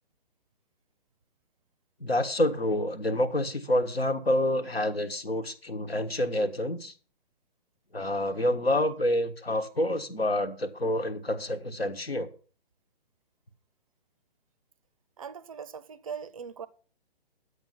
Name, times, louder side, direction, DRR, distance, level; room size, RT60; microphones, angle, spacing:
voice 1, 2.0-6.9 7.9-12.3, left 1 dB, 80° left, 1.5 m, -28 dB
voice 2, 15.2-16.7, right 7 dB, 35° right, 0.5 m, -40 dB
10.5 x 8.2 x 5.5 m
figure-of-eight pair, 130°, 30 cm